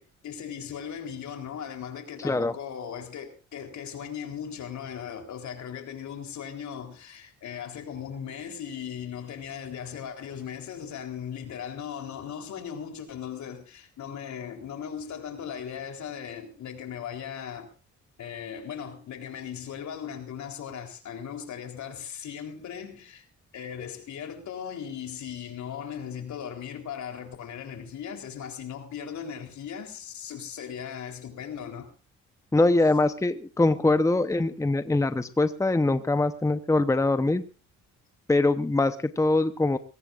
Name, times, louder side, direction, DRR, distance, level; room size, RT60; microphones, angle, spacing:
voice 1, 0.0-17.7 18.2-23.3 23.5-31.9, left 8 dB, 70° left, 3.8 m, -38 dB
voice 2, 32.5-37.4 38.3-39.8, left 2 dB, 10° left, 0.9 m, -23 dB
22.0 x 18.0 x 2.6 m
cardioid pair, 90°, 30 cm